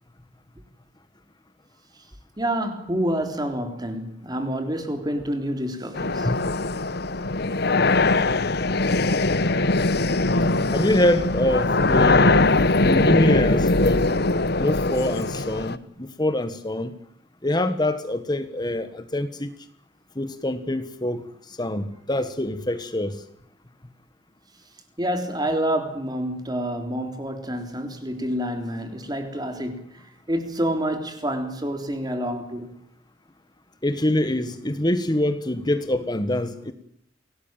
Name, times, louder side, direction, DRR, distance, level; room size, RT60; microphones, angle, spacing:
voice 1, 2.4-6.3 25.0-32.7, right 1 dB, 20° right, 3.6 m, -28 dB
sound 1, 6.0-15.8, left 2 dB, 60° left, 1.1 m, -21 dB
voice 2, 10.7-12.4 12.8-14.0 14.6-16.9 17.4-19.5 20.1-23.2 33.8-36.7, left 1 dB, 25° left, 1.5 m, -25 dB
26.0 x 18.0 x 9.1 m
head